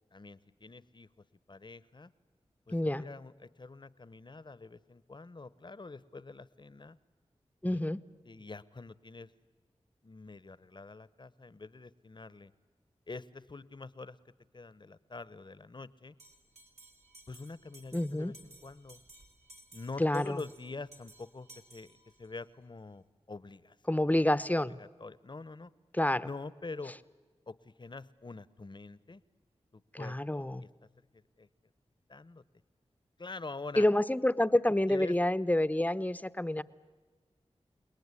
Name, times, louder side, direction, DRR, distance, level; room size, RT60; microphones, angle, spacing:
voice 1, 0.1-1.1 1.5-2.1 2.7-7.0 7.6-7.8 8.2-9.3 10.0-12.5 13.1-14.2 14.5-16.1 17.3-19.0 19.7-24.2 24.8-25.7 26.2-26.9 27.5-29.2 29.7-31.5 32.1-32.4 33.2-33.9 34.9-35.1, left 3 dB, 40° left, 17 dB, 1.0 m, -46 dB
voice 2, 2.7-3.0 7.6-8.0 17.9-18.3 20.0-20.4 23.9-24.8 25.9-26.3 29.9-30.6 33.8-36.6, left 1 dB, 15° left, 16 dB, 0.9 m, -28 dB
Bell, 16.2-22.4, right 1 dB, 70° right, 3.4 m, -57 dB
29.5 x 19.0 x 9.8 m, 1.4 s
cardioid pair, 40°, 12 cm